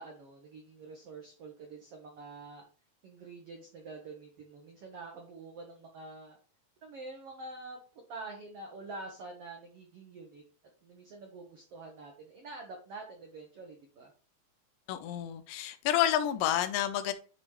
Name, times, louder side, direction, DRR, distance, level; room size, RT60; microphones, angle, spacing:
voice 1, 0.0-2.6 3.0-6.4 6.8-7.8 8.1-10.4 10.8-14.1, right 3 dB, 75° right, 2 dB, 1.4 m, -46 dB
voice 2, 14.9-17.1, left 11 dB, 80° left, 10 dB, 2.3 m, -29 dB
9.8 x 3.7 x 3.1 m, 0.40 s
omnidirectional pair, 4.2 m